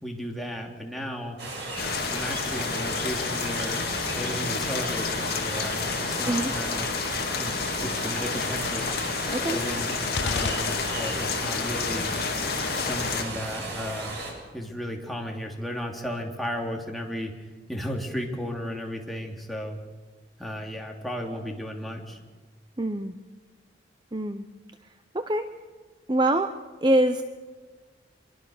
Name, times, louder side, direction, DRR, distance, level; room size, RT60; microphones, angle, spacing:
voice 1, 0.0-1.4 2.1-3.8 4.1-6.8 7.3-8.9 9.4-9.9 10.2-12.1 12.8-14.2 14.5-19.8 20.4-22.2, equal, ahead, -1 dB, 3.0 m, -34 dB
sound 1, 1.4-14.3, right 2 dB, 75° right, 7.6 m, -35 dB
sound 2, 1.8-13.2, left 5 dB, 55° left, 2.3 m, -30 dB
sound 3, 10.1-11.4, left 5 dB, 75° left, 0.7 m, -32 dB
voice 2, 22.8-23.1 24.1-24.5 25.1-25.5 26.1-27.2, right 1 dB, 25° right, 8 dB, 0.8 m, -24 dB
25.0 x 22.5 x 6.5 m, 1.4 s
head